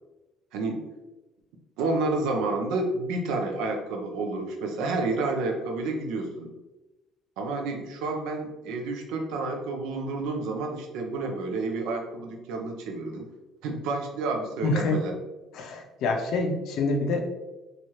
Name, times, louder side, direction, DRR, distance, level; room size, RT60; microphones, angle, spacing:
voice 1, 0.5-0.9 1.8-6.5 7.4-13.3 13.6-15.1, right 3 dB, 90° right, 3 dB, 0.5 m, -30 dB
voice 2, 14.6-15.0 15.5-17.3, left 3 dB, 65° left, 3 dB, 0.5 m, -26 dB
3.1 x 2.3 x 2.8 m, 1.1 s
cardioid pair, 130°, 0 cm